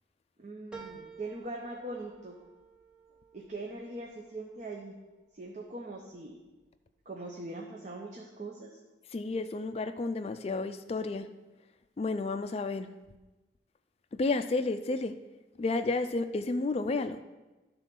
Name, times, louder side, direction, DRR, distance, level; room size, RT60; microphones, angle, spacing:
voice 1, 0.4-2.4 3.3-4.9 5.3-6.4 7.1-8.7, right 2 dB, 40° right, 0 dB, 0.8 m, -41 dB
sound 1, 0.7-5.5 6.0-6.7 7.0-7.1, right 5 dB, 5° right, 0.9 m, -53 dB
voice 2, 9.1-11.3 12.0-12.9 14.1-15.2 15.6-17.2, left 3 dB, 35° left, 10 dB, 0.3 m, -31 dB
11.5 x 4.0 x 5.9 m, 1.1 s
head